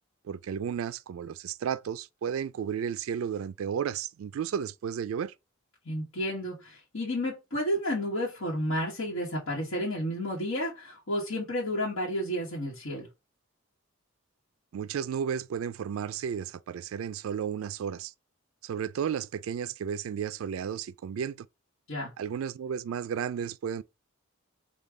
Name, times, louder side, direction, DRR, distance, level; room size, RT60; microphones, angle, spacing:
voice 1, 0.2-5.3 14.7-18.1 18.6-21.5 22.2-23.8, right 7 dB, 85° right, 0.3 m, -33 dB
voice 2, 5.8-13.1 21.9-22.1, equal, 75° left, 1.3 m, -31 dB
5.3 x 2.3 x 3.6 m
head